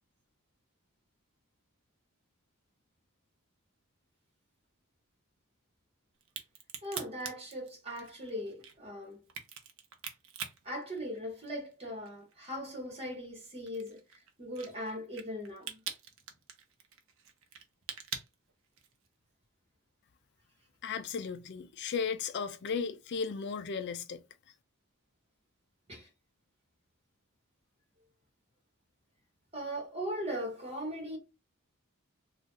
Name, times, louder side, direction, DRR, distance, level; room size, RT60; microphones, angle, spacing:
Crack, 6.2-11.7 12.1-19.1, right 8 dB, 65° right, 0.7 m, -44 dB
voice 1, 6.8-9.2 10.6-14.0 14.4-15.8 25.9-26.1 29.5-31.2, equal, 30° right, 1.3 m, -39 dB
voice 2, 20.8-24.2, left 6 dB, 55° left, 0.4 m, -35 dB
2.6 x 2.5 x 3.7 m
head